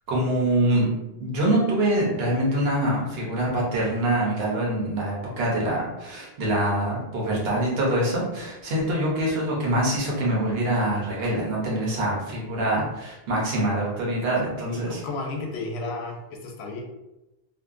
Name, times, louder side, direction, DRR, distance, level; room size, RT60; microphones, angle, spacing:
voice 1, 0.1-0.9 1.2-15.0, right 1 dB, 60° right, -4 dB, 1.0 m, -24 dB
voice 2, 14.5-16.8, left 2 dB, 65° left, 0 dB, 0.8 m, -33 dB
2.6 x 2.2 x 2.4 m, 0.98 s
omnidirectional pair, 1.3 m